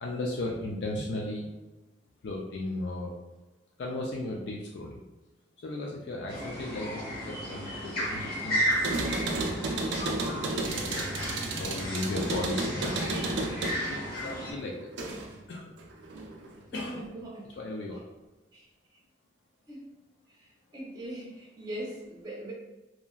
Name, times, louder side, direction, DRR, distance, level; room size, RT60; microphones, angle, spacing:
voice 1, 0.0-1.5 2.2-3.1 3.8-5.0 5.6-8.7 10.3-11.2 11.5-13.2 13.9-14.9 15.5-15.7 16.7-17.0 17.6-18.0, left 2 dB, 70° left, -1 dB, 0.4 m, -36 dB
sound 1, 6.3-14.5, equal, 55° left, 0.9 m, -34 dB
sound 2, 8.7-15.4 15.8-16.6, right 2 dB, 80° right, 0.4 m, -33 dB
voice 2, 16.7-17.6 18.5-18.7 19.7-19.9 20.3-22.5, right 1 dB, 20° right, -5 dB, 0.6 m, -41 dB
3.0 x 2.4 x 2.3 m, 1.1 s
head